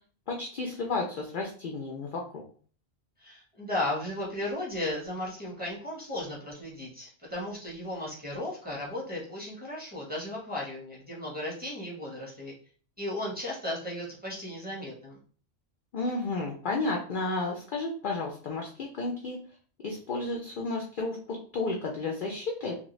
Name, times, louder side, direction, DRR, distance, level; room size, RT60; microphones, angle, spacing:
voice 1, 0.3-2.4 15.9-19.4 19.8-22.7, left 3 dB, 60° left, 0 dB, 0.5 m, -32 dB
voice 2, 3.2-12.5 13.0-15.2, left 1 dB, 10° right, -5 dB, 0.8 m, -35 dB
2.9 x 2.2 x 3.0 m, 0.43 s
omnidirectional pair, 1.3 m